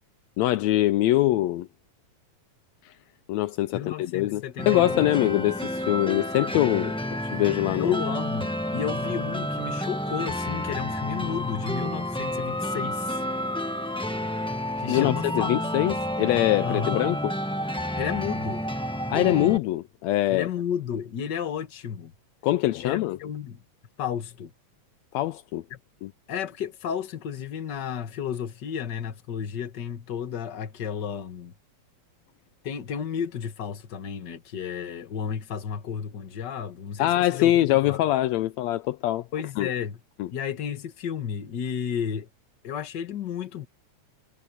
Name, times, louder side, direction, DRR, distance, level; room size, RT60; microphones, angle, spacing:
voice 1, 0.4-1.7 2.9-3.0 3.3-7.0 7.3-8.0 14.9-17.3 19.1-20.5 22.4-23.2 25.1-25.6 26.0-26.1 37.0-39.3 39.6-39.7 40.2-40.3, left 15 dB, 80° left, 1.8 m, -23 dB
voice 2, 3.7-5.1 7.7-13.2 14.8-15.9 16.6-17.1 18.0-18.6 20.3-22.1 22.8-23.6 24.0-24.5 25.7-25.8 26.3-31.5 32.6-37.6 37.9-38.0 39.3-40.0 40.3-42.3 42.6-43.7, left 8 dB, 45° left, 1.8 m, -32 dB
sound 1, 4.6-19.6, equal, 5° left, 0.3 m, -30 dB
omnidirectional pair, 3.3 m